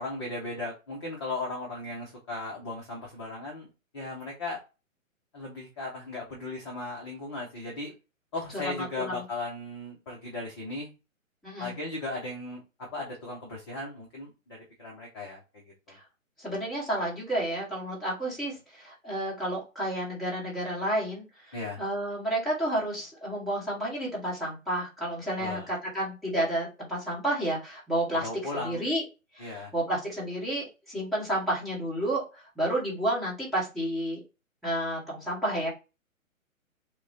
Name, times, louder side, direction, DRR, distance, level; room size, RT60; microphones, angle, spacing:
voice 1, 0.0-3.7 3.9-4.6 5.3-7.9 8.3-10.9 11.6-12.6 12.9-16.0 21.5-21.8 25.4-25.7 28.2-28.8 29.4-29.7, left 2 dB, 20° left, -2 dB, 0.5 m, -37 dB
voice 2, 8.6-9.2 11.4-11.8 15.9-16.0 16.4-29.0 29.3-34.2 34.6-35.7, right 1 dB, ahead, -7 dB, 0.9 m, -31 dB
5.8 x 2.1 x 2.7 m, 0.29 s
hypercardioid pair, 140°, 42 cm